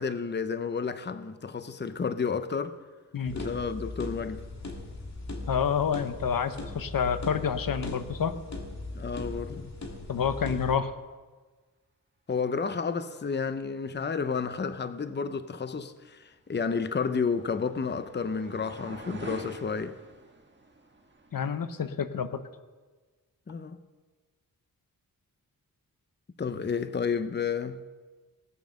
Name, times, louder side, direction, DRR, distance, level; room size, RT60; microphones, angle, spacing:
voice 1, 0.0-2.8 3.3-4.4 8.9-9.7 12.3-20.0 23.5-23.8 26.4-27.8, left 5 dB, 30° left, 0.7 m, -31 dB
sound 1, 3.2-10.8, left 2 dB, 50° left, 2.1 m, -39 dB
voice 2, 5.5-8.4 10.1-10.9 21.3-22.4, left 7 dB, 70° left, 0.8 m, -28 dB
sound 2, 16.3-21.6, right 2 dB, 30° right, 1.6 m, -47 dB
18.0 x 6.7 x 6.5 m
cardioid pair, 60°, 35 cm